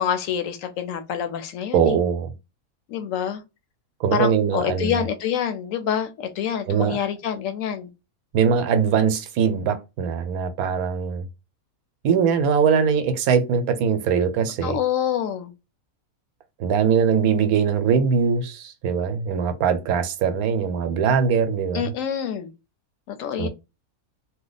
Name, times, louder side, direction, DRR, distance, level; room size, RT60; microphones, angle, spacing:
voice 1, 0.0-1.9 2.9-3.4 4.1-7.9 14.6-15.5 21.7-22.5 23.1-23.5, left 8 dB, 70° left, 0.9 m, -26 dB
voice 2, 1.7-2.4 4.0-5.1 6.7-7.0 8.3-11.3 12.0-14.8 16.6-21.8 23.4-23.5, right 6 dB, 90° right, 1.1 m, -21 dB
2.9 x 2.1 x 3.9 m
omnidirectional pair, 1.5 m